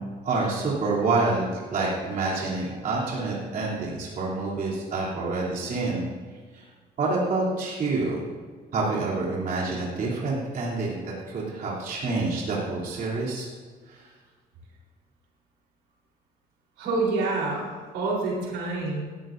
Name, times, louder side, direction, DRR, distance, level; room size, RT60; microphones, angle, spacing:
voice 1, 0.0-6.0 6.5-6.6 7.0-8.2 8.7-13.5 13.9-14.1, right 3 dB, 55° right, -5 dB, 3.1 m, -27 dB
voice 2, 16.8-17.7 17.9-19.0, right 3 dB, 85° right, -3 dB, 3.8 m, -27 dB
16.5 x 13.0 x 2.6 m, 1.5 s
cardioid pair, 110°, 17 cm